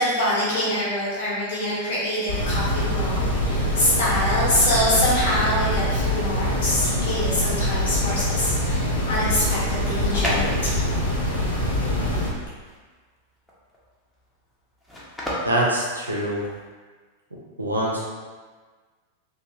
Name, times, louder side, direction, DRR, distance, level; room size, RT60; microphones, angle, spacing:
voice 1, 0.0-10.8, left 1 dB, 60° left, -8 dB, 1.1 m, -25 dB
sound 1, 2.3-12.3, left 1 dB, 80° left, 0.6 m, -24 dB
sound 2, 9.7-16.7, equal, 5° left, 0.7 m, -34 dB
voice 2, 15.4-16.4 17.6-18.0, right 1 dB, 80° right, -3 dB, 0.5 m, -24 dB
2.8 x 2.3 x 2.7 m, 1.4 s
figure-of-eight pair, 90°, 0 cm